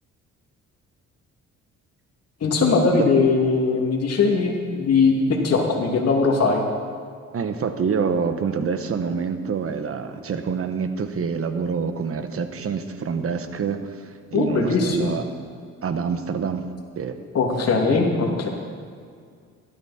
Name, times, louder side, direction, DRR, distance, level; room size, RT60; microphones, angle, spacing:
voice 1, 2.4-6.6 14.3-15.2 17.3-18.5, left 4 dB, 55° left, 0 dB, 2.8 m, -20 dB
voice 2, 7.3-15.3 15.8-16.7 17.0-17.2 17.9-18.0, right 6 dB, 50° right, 8 dB, 1.2 m, -26 dB
16.0 x 13.0 x 4.4 m, 2.2 s
cardioid pair, 90°, 30 cm